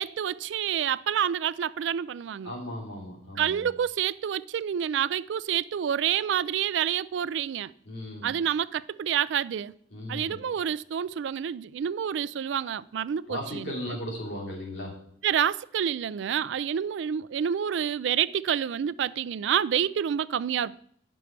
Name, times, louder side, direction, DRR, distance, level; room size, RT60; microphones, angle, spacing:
voice 1, 0.0-2.5 3.4-7.7 8.2-9.7 10.1-13.7 15.2-20.8, right 9 dB, 75° right, 0.3 m, -28 dB
voice 2, 2.4-3.5 7.9-8.3 9.9-10.4 13.3-15.0, left 1 dB, 75° left, 3.0 m, -36 dB
9.5 x 6.2 x 4.5 m
head